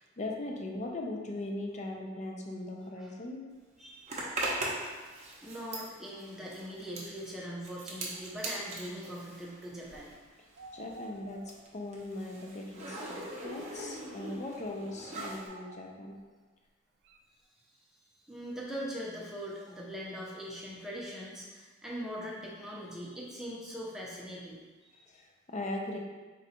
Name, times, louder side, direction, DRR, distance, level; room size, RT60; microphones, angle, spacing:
voice 1, 0.2-3.4 10.7-16.2 25.1-26.0, left 2 dB, 35° left, 1 dB, 0.5 m, -39 dB
Zipper (clothing), 4.1-10.2 10.5-15.5, right 2 dB, 35° right, 0.7 m, -40 dB
voice 2, 5.4-10.1 18.3-25.0, equal, 5° right, -5 dB, 0.7 m, -41 dB
sound 1, 9.9-10.2 10.6-11.9 12.4-12.5 13.2-13.8 14.9-16.3 17.0-17.2, right 3 dB, 60° right, 0.3 m, -51 dB
3.9 x 2.3 x 4.2 m, 1.3 s
head